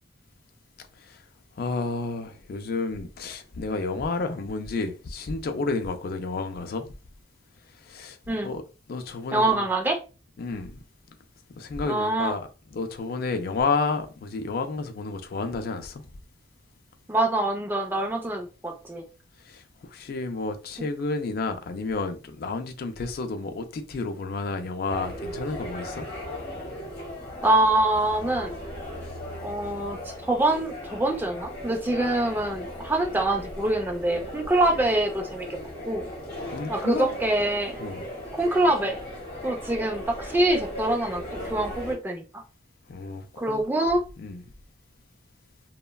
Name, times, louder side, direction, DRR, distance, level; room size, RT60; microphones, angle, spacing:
voice 1, 1.6-6.9 7.8-8.2 8.4-8.6 8.9-9.6 10.4-10.8 11.5-12.5 12.7-16.1 19.4-26.0 36.4-37.1 37.8-38.1 42.9-43.6 44.2-44.4, left 3 dB, 55° left, 0.4 m, -31 dB
voice 2, 9.3-10.0 11.9-12.4 17.1-19.0 27.4-28.6 29.4-30.0 30.3-35.5 35.9-36.0 36.7-37.8 38.4-39.0 39.4-42.4 43.4-44.0, right 1 dB, 10° right, 0.4 m, -25 dB
sound 1, 24.9-41.9, left 1 dB, 40° left, 1.1 m, -37 dB
3.1 x 2.1 x 2.2 m
head